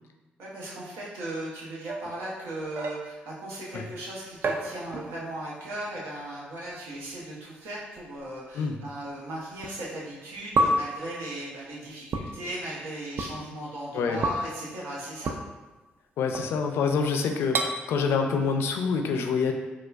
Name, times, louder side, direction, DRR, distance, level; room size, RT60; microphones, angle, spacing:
voice 1, 0.4-15.3, right 1 dB, 80° right, -5 dB, 0.9 m, -37 dB
sound 1, 1.9-3.4 4.4-5.4 5.7-6.0 7.0-7.1 8.0-8.1 9.6-9.7 10.6-11.0 12.1-12.3 13.2-13.3 14.2-14.5 15.3-15.4 16.3-16.8 17.5-17.7, right 1 dB, 55° right, 0.4 m, -29 dB
voice 2, 16.2-19.5, left 5 dB, 75° left, 4 dB, 0.4 m, -26 dB
4.3 x 2.2 x 2.4 m, 1.2 s
supercardioid pair, 60°, 4 cm